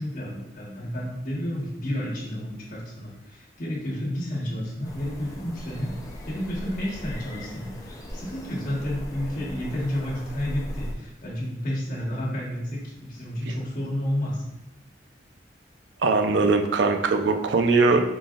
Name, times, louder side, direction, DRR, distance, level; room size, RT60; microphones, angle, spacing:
voice 1, 0.0-5.9 6.2-14.4, equal, 50° left, -5 dB, 1.3 m, -31 dB
sound 1, 4.8-10.9, equal, 20° left, 0.5 m, -38 dB
voice 2, 16.0-18.0, right 3 dB, 80° right, 6 dB, 0.4 m, -21 dB
4.7 x 3.9 x 2.4 m, 0.93 s
head